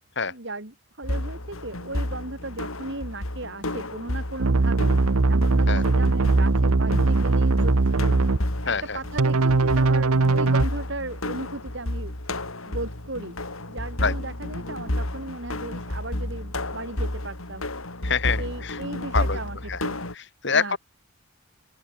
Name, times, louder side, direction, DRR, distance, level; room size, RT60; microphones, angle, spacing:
voice 1, 0.2-4.9 5.3-8.0 8.6-12.1 12.7-13.4 13.7-17.6 18.4-20.0 20.5-20.8, right 2 dB, 55° right, 3.1 m, -36 dB
sound 1, 1.0-20.1, left 1 dB, 75° left, 4.1 m, -32 dB
sound 2, 4.4-8.4 9.2-10.6, right 3 dB, 90° right, 1.0 m, -20 dB
voice 2, 8.7-9.0 14.0-14.1 18.0-18.8 19.1-19.4 19.7-19.8 20.1-20.7, left 5 dB, 55° left, 2.7 m, -26 dB
open air
head